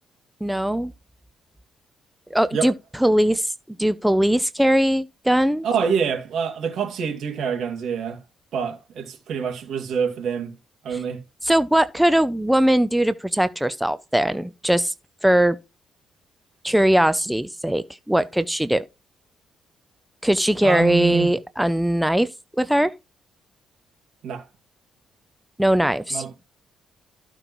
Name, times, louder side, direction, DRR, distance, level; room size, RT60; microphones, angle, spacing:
voice 1, 0.4-0.9 2.3-2.7 3.0-3.5 3.8-5.7 10.9-11.0 11.4-14.9 15.2-15.6 16.6-18.8 20.2-22.3 22.6-22.9 25.6-26.2, right 1 dB, 5° right, 0.4 m, -20 dB
voice 2, 5.6-8.2 8.5-10.5 10.8-11.2 20.6-21.3 24.2-24.5 26.1-26.3, right 7 dB, 70° right, 2.1 m, -26 dB
13.5 x 5.2 x 3.0 m
cardioid pair, 90°, 0 cm